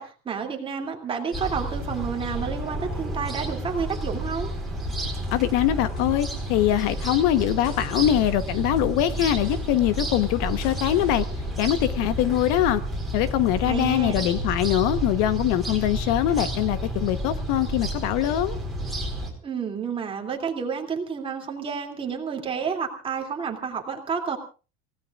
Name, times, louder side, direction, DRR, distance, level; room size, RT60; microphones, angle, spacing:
voice 1, 0.0-4.5 13.7-14.3 19.4-24.4, right 6 dB, 15° right, 2 dB, 2.8 m, -30 dB
sound 1, 1.3-19.3, right 1 dB, ahead, 4.3 m, -31 dB
voice 2, 5.3-11.3 11.6-12.8 13.1-18.6, left 12 dB, 60° left, 12 dB, 1.2 m, -23 dB
sound 2, 5.8-7.2 7.6-11.2, left 5 dB, 40° left, 2.7 m, -47 dB
29.0 x 17.5 x 2.5 m, 0.34 s
cardioid pair, 180°, 32 cm